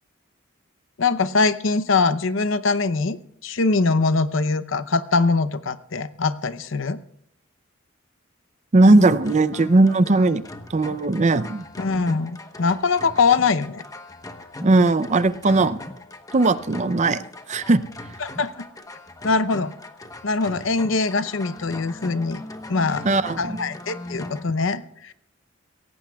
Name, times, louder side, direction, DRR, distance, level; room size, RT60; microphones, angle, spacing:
voice 1, 1.0-7.0 11.8-13.8 18.2-18.5 19.2-19.7 20.2-23.1 23.4-25.1, left 4 dB, 75° left, 14 dB, 0.7 m, -22 dB
voice 2, 8.7-10.4 10.7-11.6 14.6-15.8 16.3-17.2 17.5-17.8 23.0-23.6, right 2 dB, 35° right, 14 dB, 0.5 m, -18 dB
sound 1, 9.0-24.5, left 2 dB, 20° left, 1.0 m, -39 dB
23.5 x 17.0 x 2.3 m, 0.72 s
head